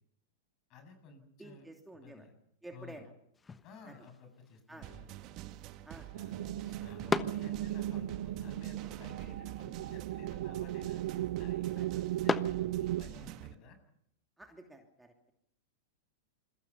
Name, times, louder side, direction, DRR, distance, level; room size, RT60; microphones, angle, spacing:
voice 1, 0.7-1.7 1.9-2.3 2.7-3.0 3.6-5.1 6.1-11.0 11.4-13.8, left 4 dB, 40° left, 8 dB, 7.6 m, -54 dB
voice 2, 1.4-2.2 2.6-3.1 3.9-4.0 4.7-4.9 5.8-6.1 11.8-11.9 14.4-15.1, right 2 dB, 5° right, 3 dB, 2.9 m, -50 dB
sound 1, 3.3-13.4, left 4 dB, 15° left, 1.2 m, -42 dB
sound 2, 4.8-13.5, right 14 dB, 40° right, 1.6 m, -47 dB
sound 3, 6.1-13.0, right 14 dB, 60° right, 1.0 m, -36 dB
27.5 x 22.0 x 5.7 m, 0.72 s
figure-of-eight pair, 100°, 0 cm